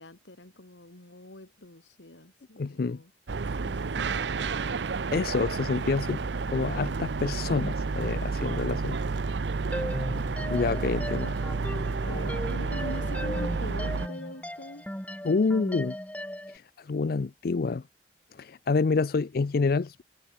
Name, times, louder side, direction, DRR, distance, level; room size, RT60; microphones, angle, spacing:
voice 1, 0.0-3.1 3.6-4.5 9.8-10.2 12.0-14.9, left 1 dB, 90° left, 2.6 m, -43 dB
voice 2, 2.6-3.0 5.1-6.2 6.5-9.0 10.5-11.4 15.2-16.0 16.5-17.8 18.4-20.0, left 4 dB, 55° left, 0.5 m, -27 dB
sound 1, 3.3-14.1, right 4 dB, 75° right, 0.6 m, -30 dB
sound 2, 9.7-16.6, equal, 10° left, 2.7 m, -37 dB
head